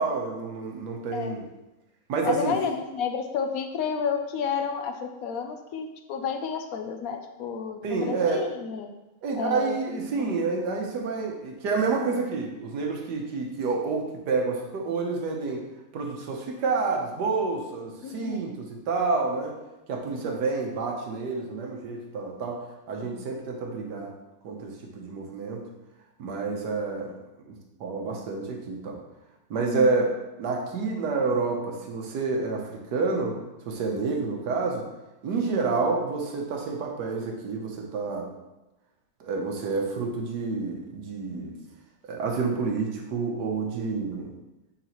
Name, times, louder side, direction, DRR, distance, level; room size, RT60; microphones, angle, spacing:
voice 1, 0.0-1.4 2.1-2.5 7.8-8.4 9.2-15.6 15.9-19.6 19.9-22.6 22.9-24.1 24.4-25.6 26.2-27.1 27.5-29.0 29.5-30.1 30.4-33.3 33.7-34.8 35.2-38.3 39.2-41.5 42.1-44.3, right 4 dB, 90° right, 1 dB, 1.5 m, -28 dB
voice 2, 2.2-8.9 9.4-9.8 10.1-10.3 18.0-18.5 20.2-20.4 23.0-23.3 29.7-30.1, left 6 dB, 70° left, 6 dB, 0.9 m, -31 dB
9.8 x 3.9 x 3.0 m, 1.0 s
omnidirectional pair, 1.8 m